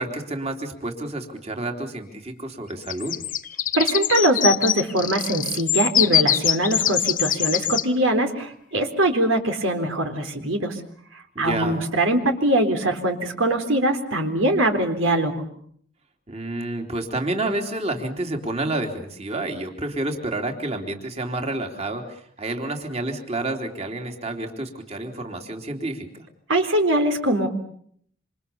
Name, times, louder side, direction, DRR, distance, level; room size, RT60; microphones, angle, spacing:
voice 1, 0.0-3.1 11.3-11.8 16.3-26.3, right 2 dB, 30° right, 4 dB, 3.3 m, -29 dB
sound 1, 2.9-7.8, left 11 dB, 40° left, 1.1 m, -23 dB
voice 2, 3.7-10.8 11.4-15.4 26.5-27.5, right 1 dB, 75° right, 5 dB, 3.8 m, -22 dB
27.5 x 27.0 x 7.1 m, 0.64 s
head